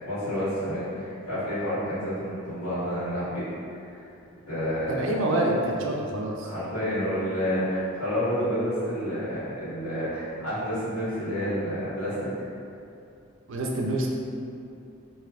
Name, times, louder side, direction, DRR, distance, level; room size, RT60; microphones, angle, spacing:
voice 1, 0.0-3.5 3.7-4.1 4.4-5.1 6.4-12.2, equal, 90° left, -12 dB, 1.5 m, -29 dB
voice 2, 4.9-6.5 13.5-14.1, right 1 dB, 60° right, -1 dB, 0.4 m, -26 dB
3.2 x 2.6 x 2.4 m, 2.5 s
head